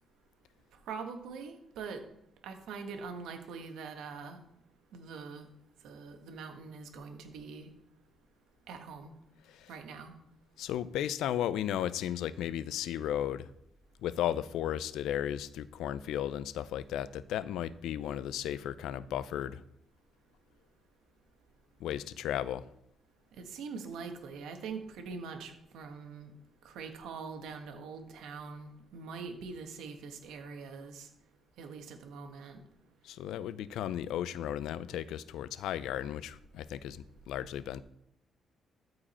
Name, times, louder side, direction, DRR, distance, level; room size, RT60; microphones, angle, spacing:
voice 1, 0.9-2.0 2.4-4.4 4.9-5.5 5.8-7.7 8.7-9.1 9.7-10.1 23.4-26.3 26.6-31.1 31.6-32.6, right 5 dB, 90° right, 5 dB, 1.4 m, -43 dB
voice 2, 10.6-13.5 14.0-19.6 21.8-22.6 33.0-37.8, left 11 dB, 90° left, 17 dB, 0.4 m, -35 dB
13.5 x 4.8 x 4.3 m, 0.78 s
cardioid pair, 95°, 0 cm